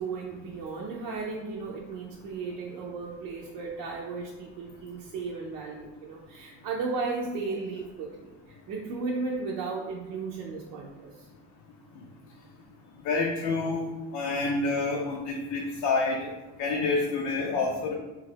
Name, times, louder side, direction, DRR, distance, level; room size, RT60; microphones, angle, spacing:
voice 1, 0.0-11.3 17.5-17.7, right 4 dB, 70° right, -3 dB, 0.6 m, -35 dB
voice 2, 13.0-13.8 14.1-16.3 16.6-17.9, left 3 dB, 75° left, -1 dB, 0.6 m, -28 dB
3.1 x 2.4 x 3.3 m, 1.2 s
cardioid pair, 100°, 36 cm